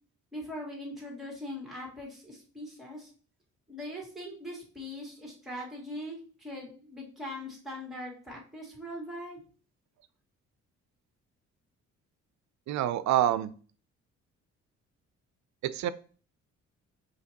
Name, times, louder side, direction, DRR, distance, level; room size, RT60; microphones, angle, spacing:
voice 1, 0.3-3.1 3.7-9.4, left 1 dB, ahead, -2 dB, 2.1 m, -41 dB
voice 2, 12.7-13.5 15.6-15.9, right 12 dB, 70° right, 15 dB, 0.5 m, -26 dB
5.0 x 2.9 x 2.8 m, 0.40 s
cardioid pair, 90°, 30 cm